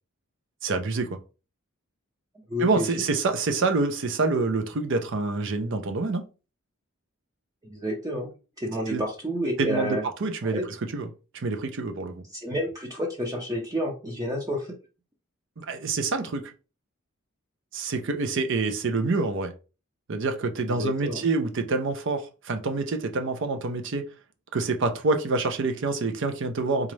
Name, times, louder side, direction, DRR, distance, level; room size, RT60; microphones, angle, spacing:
voice 1, 0.6-1.2 2.6-6.2 8.9-9.0 9.6-10.6 10.9-11.1 11.3-12.2 15.6-16.5 17.7-19.5 20.1-24.0 24.5-26.9, right 3 dB, 60° right, 0.6 m, -27 dB
voice 2, 2.5-2.9 7.6-8.3 8.6-10.0 10.4-10.6 12.3-14.7 20.7-21.2, equal, 15° right, 0.6 m, -30 dB
4.0 x 2.4 x 3.1 m
head